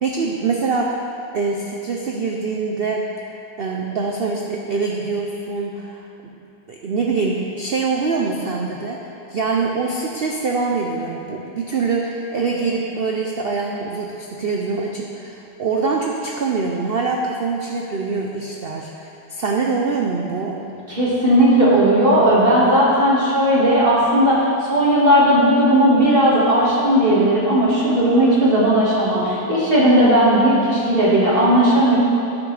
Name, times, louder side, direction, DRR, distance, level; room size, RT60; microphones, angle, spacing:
voice 1, 0.0-1.1 1.3-3.1 3.6-6.4 6.7-20.6, right 4 dB, 75° right, 0 dB, 0.5 m, -24 dB
voice 2, 20.9-24.4 24.7-32.0, right 1 dB, 35° right, -7 dB, 2.0 m, -16 dB
14.0 x 6.2 x 3.3 m, 2.7 s
omnidirectional pair, 1.8 m